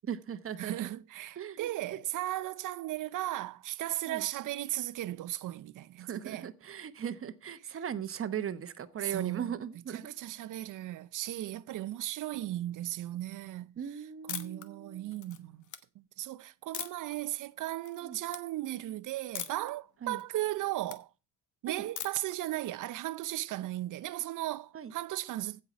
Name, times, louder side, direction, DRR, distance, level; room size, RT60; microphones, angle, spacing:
voice 1, 0.0-0.7 1.4-1.7 4.1-4.2 6.0-10.1 13.8-15.1 18.0-18.2 20.0-20.2 21.7-21.9 24.7-24.9, right 8 dB, 45° right, 1.0 m, -38 dB
voice 2, 0.6-6.5 9.0-9.5 9.9-13.7 14.3-15.7 15.9-21.1 21.6-25.6, right 15 dB, 85° right, 0.7 m, -36 dB
sound 1, 14.3-14.7 15.1-15.8 16.7-17.1 17.6-18.0 18.3-18.4 19.3-19.7 20.1-21.0 22.0-22.3, left 10 dB, 75° left, 1.1 m, -40 dB
15.5 x 5.7 x 5.0 m
cardioid pair, 125°, 30 cm